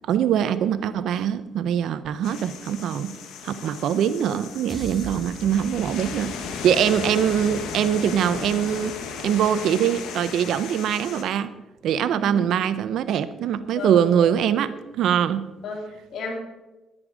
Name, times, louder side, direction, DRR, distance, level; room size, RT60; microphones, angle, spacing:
voice 1, 0.1-3.1 3.4-9.0 9.2-11.5 11.8-15.4, right 9 dB, 80° right, 14 dB, 0.7 m, -23 dB
sound 1, 2.2-11.2, left 6 dB, 90° left, 1.4 m, -36 dB
sound 2, 4.7-9.0, right 2 dB, 30° right, 1.9 m, -42 dB
voice 2, 12.1-12.7 13.7-14.4 15.6-16.4, left 3 dB, 70° left, 1 dB, 3.1 m, -34 dB
11.0 x 9.8 x 5.0 m, 1.1 s
cardioid pair, 90°, 0 cm